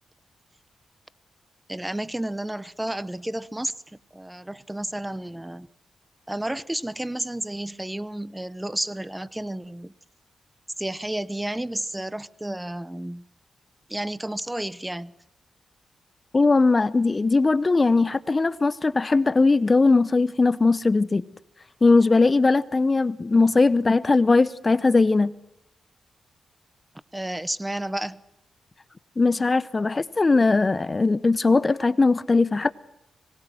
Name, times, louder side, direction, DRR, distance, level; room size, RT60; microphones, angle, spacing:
voice 1, 1.7-5.7 6.3-9.9 10.8-13.3 13.9-15.1 27.1-28.2, right 1 dB, 10° right, 0.9 m, -31 dB
voice 2, 16.3-21.2 21.8-25.3 29.2-32.7, left 3 dB, 35° left, 0.8 m, -20 dB
26.0 x 21.0 x 7.7 m
cardioid pair, 60°, 0 cm